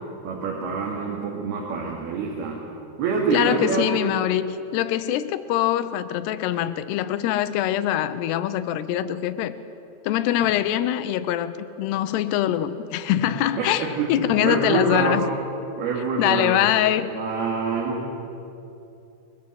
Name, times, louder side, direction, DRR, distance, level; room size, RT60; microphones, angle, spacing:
voice 1, 0.2-2.6 3.0-3.9 13.1-13.2 13.6-15.4 15.8-16.6 17.1-18.1, right 4 dB, 65° right, -2 dB, 4.3 m, -26 dB
voice 2, 3.3-9.6 10.0-15.2 16.2-17.1, left 12 dB, 75° left, 12 dB, 2.8 m, -23 dB
24.5 x 22.5 x 7.8 m, 2.8 s
omnidirectional pair, 5.2 m